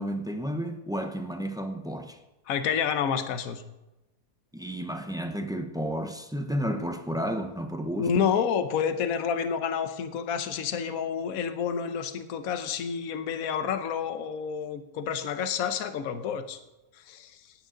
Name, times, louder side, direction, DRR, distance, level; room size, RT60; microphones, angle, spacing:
voice 1, 0.0-2.2 4.5-8.1, equal, 5° right, 0.4 m, -32 dB
voice 2, 2.5-3.6 8.0-16.6 17.1-17.4, left 7 dB, 65° left, 1.3 m, -29 dB
18.5 x 9.0 x 3.8 m
omnidirectional pair, 1.7 m